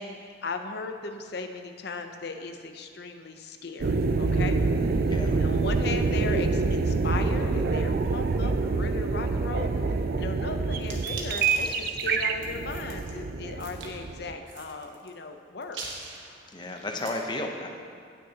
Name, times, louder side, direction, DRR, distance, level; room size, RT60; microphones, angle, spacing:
voice 1, 0.0-4.6 5.4-9.7 10.2-16.0, left 3 dB, 60° left, 6 dB, 0.6 m, -37 dB
sound 1, 3.8-14.3, right 4 dB, 50° right, 0.4 m, -26 dB
voice 2, 5.1-5.4 16.5-17.7, left 2 dB, 25° left, 2 dB, 0.7 m, -33 dB
sound 2, 10.8-13.1 13.6-13.9 14.5-15.1 15.6-17.1, right 3 dB, 85° right, 1.3 m, -42 dB
17.0 x 6.4 x 2.9 m, 2.2 s
head